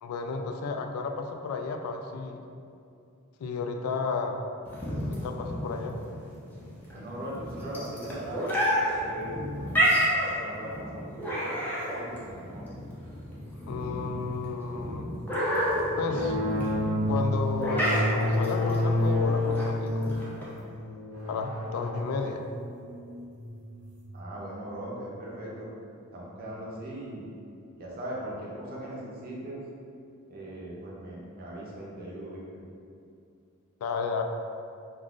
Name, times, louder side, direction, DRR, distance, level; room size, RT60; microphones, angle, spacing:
voice 1, 0.0-2.5 3.4-4.4 5.0-6.0 13.7-15.2 16.0-16.4 17.1-20.1 21.3-22.5 33.8-34.2, left 4 dB, 90° left, 8 dB, 0.3 m, -33 dB
sound 1, 4.7-20.6, equal, 10° left, 0.5 m, -30 dB
voice 2, 6.9-8.4 9.0-9.8 10.3-11.2 11.7-12.7 24.1-25.7 26.1-27.2 27.8-29.6 30.3-32.4, right 1 dB, 45° right, -5 dB, 0.6 m, -39 dB
sound 2, 16.0-24.1, left 1 dB, 80° right, 0.6 m, -29 dB
2.5 x 2.4 x 3.6 m, 2.5 s
head